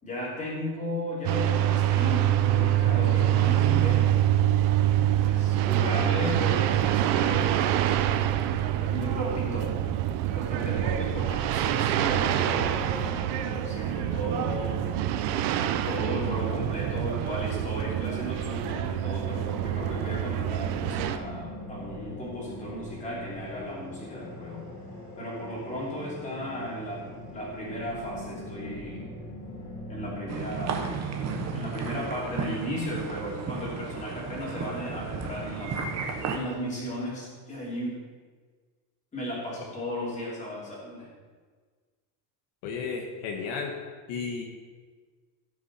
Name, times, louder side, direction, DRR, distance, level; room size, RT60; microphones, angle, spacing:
voice 1, 0.0-4.3 5.2-7.9 8.8-9.7 10.2-14.8 15.8-24.7 25.2-29.0 29.9-30.8 31.5-35.7 36.3-38.0 39.1-41.1, equal, 15° left, -5 dB, 3.1 m, -35 dB
sound 1, 1.2-21.2, right 12 dB, 60° right, 0.7 m, -25 dB
sound 2, 12.5-30.5, left 1 dB, 35° left, 2.6 m, -42 dB
sound 3, 30.3-36.4, right 5 dB, 35° right, 1.1 m, -33 dB
voice 2, 42.6-43.7 44.1-44.4, left 5 dB, 65° left, 1 dB, 1.5 m, -33 dB
16.5 x 6.3 x 4.3 m, 1.5 s
cardioid pair, 175°, 46 cm